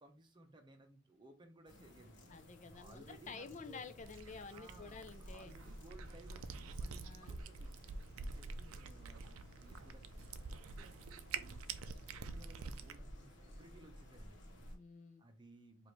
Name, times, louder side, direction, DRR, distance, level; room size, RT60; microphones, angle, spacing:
voice 1, 0.0-3.9 4.5-10.9 11.3-11.6 11.9-14.6 15.2-15.9, right 2 dB, 20° right, 4 dB, 0.7 m, -61 dB
sound 1, 1.7-14.8, equal, 55° left, 1.2 m, -56 dB
voice 2, 2.3-5.6 7.0-7.4 14.7-15.2, left 4 dB, 35° left, 9 dB, 0.4 m, -51 dB
Cat, 4.0-13.0, right 4 dB, 80° right, 0.4 m, -47 dB
4.7 x 2.6 x 3.2 m, 0.34 s
head